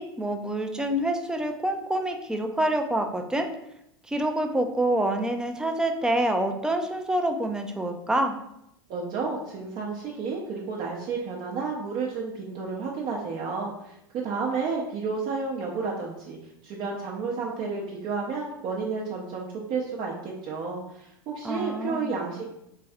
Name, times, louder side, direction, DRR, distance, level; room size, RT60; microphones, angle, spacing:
voice 1, 0.0-3.5 4.1-8.3 21.4-22.1, right 1 dB, 5° right, 5 dB, 0.5 m, -27 dB
voice 2, 8.9-16.4 16.6-22.4, right 4 dB, 45° right, -3 dB, 0.7 m, -31 dB
3.3 x 3.3 x 3.5 m, 0.81 s
hypercardioid pair, 85°, 12 cm